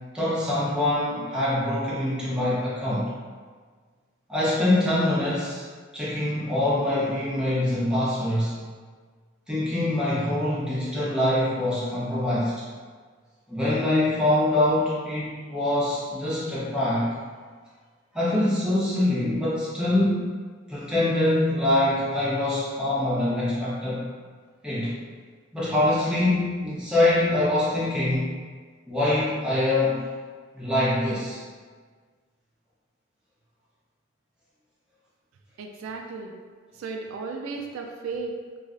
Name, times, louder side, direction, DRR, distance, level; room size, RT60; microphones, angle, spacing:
voice 1, 0.1-3.1 4.3-5.6 5.9-8.5 9.5-12.5 13.5-17.1 18.1-20.2 20.7-24.1 24.6-25.0 25.5-28.3 28.9-30.0 30.5-31.4, left 1 dB, 5° right, -10 dB, 0.7 m, -24 dB
voice 2, 35.6-36.3 36.7-38.6, right 4 dB, 80° right, 3 dB, 0.3 m, -35 dB
3.1 x 2.3 x 2.5 m, 1.5 s
head